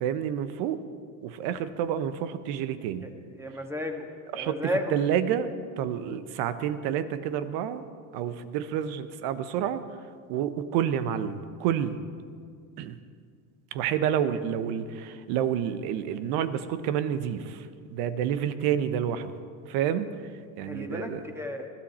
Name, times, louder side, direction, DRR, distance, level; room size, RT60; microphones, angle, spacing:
voice 1, 0.0-0.8 1.2-3.1 4.3-4.6 4.9-5.5 5.8-7.8 8.1-9.8 10.3-12.0 12.8-13.0 13.7-19.3 19.7-20.1 20.6-21.2, right 9 dB, 65° right, 12 dB, 1.1 m, -29 dB
voice 2, 3.4-4.1 4.3-4.9 14.3-14.4 20.7-21.7, left 1 dB, 5° right, 4 dB, 1.9 m, -33 dB
20.5 x 13.0 x 4.3 m, 2.1 s
hypercardioid pair, 90°, 42 cm